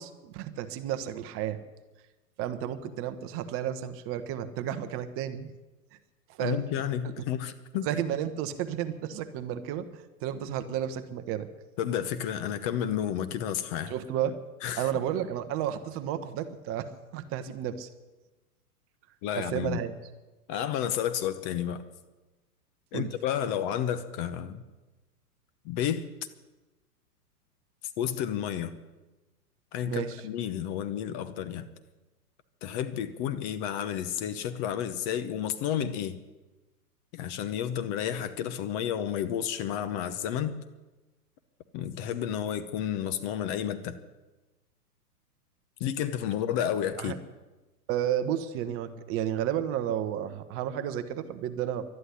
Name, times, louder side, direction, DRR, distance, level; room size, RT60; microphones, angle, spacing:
voice 1, 0.0-1.6 2.4-5.5 6.3-6.6 7.0-7.1 7.8-11.5 13.9-14.4 14.8-17.9 19.4-19.9 22.9-23.1 29.9-30.2 47.0-47.2 47.9-51.8, right 10 dB, 30° right, 10 dB, 1.0 m, -32 dB
voice 2, 6.4-7.9 11.8-13.9 14.6-14.9 19.2-19.8 20.5-21.8 22.9-24.6 25.6-26.1 28.0-28.7 29.7-31.7 32.6-36.2 37.1-40.5 41.7-44.0 45.8-47.1, left 9 dB, 35° left, 11 dB, 0.9 m, -31 dB
12.0 x 11.0 x 9.9 m, 1.1 s
hypercardioid pair, 125°, 46 cm